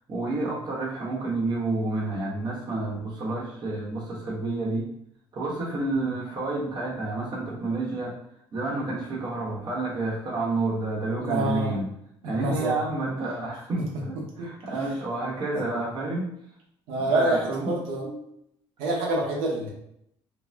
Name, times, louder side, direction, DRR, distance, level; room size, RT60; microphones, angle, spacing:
voice 1, 0.1-4.9 5.3-8.1 8.5-11.9 12.2-16.3 17.0-17.8 18.0-18.1, right 2 dB, 45° right, -4 dB, 0.9 m, -29 dB
voice 2, 11.2-11.8 12.2-12.8 14.4-14.5 15.5-15.6 16.9-18.0 18.8-19.7, right 2 dB, 90° right, -3 dB, 0.7 m, -27 dB
2.6 x 2.0 x 3.2 m, 0.75 s
cardioid pair, 120°, 10 cm